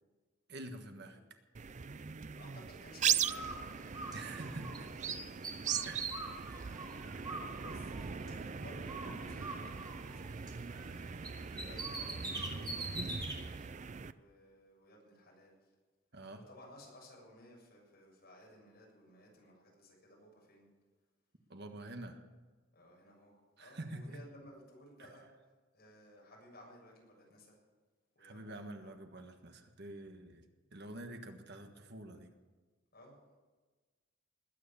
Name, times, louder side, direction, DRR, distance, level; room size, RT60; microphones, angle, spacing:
voice 1, 0.5-1.2 4.1-4.9 5.8-6.1 7.1-7.3 16.1-16.4 21.5-22.2 23.6-24.2 25.0-25.1 28.2-30.4 30.7-32.3, right 2 dB, 60° right, 6 dB, 1.5 m, -47 dB
sound 1, 1.5-14.1, right 7 dB, 40° right, 0.5 m, -39 dB
voice 2, 2.3-4.4 7.4-11.1 11.5-13.5 14.1-15.7 16.3-20.7 22.7-25.3 25.7-27.6 28.1-28.9 32.9-33.4, equal, 55° left, -2 dB, 7.0 m, -57 dB
Bird, 3.2-4.8 5.1-8.5 8.9-11.0 11.2-13.4, right 2 dB, 20° right, 3.1 m, -43 dB
20.0 x 9.5 x 7.0 m, 1.3 s
head